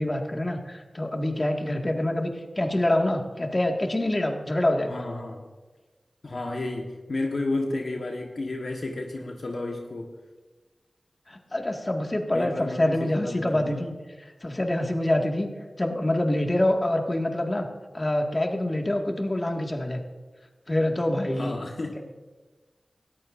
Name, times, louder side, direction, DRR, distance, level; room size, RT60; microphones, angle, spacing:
voice 1, 0.0-5.0 11.3-13.9 14.4-15.5 15.8-17.7 17.9-20.0 20.7-21.6, left 1 dB, 35° left, 2 dB, 1.9 m, -26 dB
voice 2, 4.9-5.5 6.2-10.2 12.3-13.9 21.4-22.0, left 2 dB, 70° left, 1 dB, 1.3 m, -32 dB
19.0 x 14.0 x 2.6 m, 1.3 s
cardioid pair, 45°, 0 cm